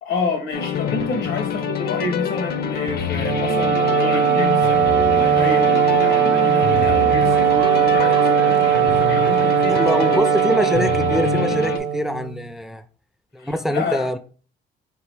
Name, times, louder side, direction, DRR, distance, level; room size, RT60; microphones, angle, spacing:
voice 1, 0.0-10.4 13.4-14.1, left 3 dB, 85° left, 1.4 m, -29 dB
sound 1, 0.5-11.8, left 7 dB, 50° left, 0.5 m, -26 dB
Wind instrument woodwind instrument, 3.1-12.4, right 10 dB, 55° right, 0.8 m, -19 dB
sound 2, 3.8-10.2, right 6 dB, 85° right, 0.7 m, -37 dB
voice 2, 9.7-12.8 13.3-14.2, equal, ahead, 0.3 m, -24 dB
3.9 x 2.7 x 4.6 m
cardioid pair, 90°, 20 cm